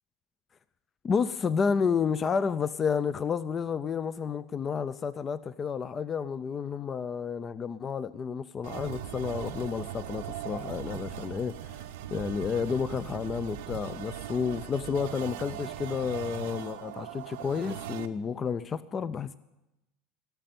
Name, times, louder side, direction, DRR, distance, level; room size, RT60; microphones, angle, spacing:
voice 1, 1.0-11.8 12.1-19.4, left 6 dB, 25° left, 0.4 m, -31 dB
sound 1, 8.6-18.1, right 12 dB, 85° right, 0.8 m, -39 dB
18.0 x 6.7 x 9.2 m
supercardioid pair, 140°, 0 cm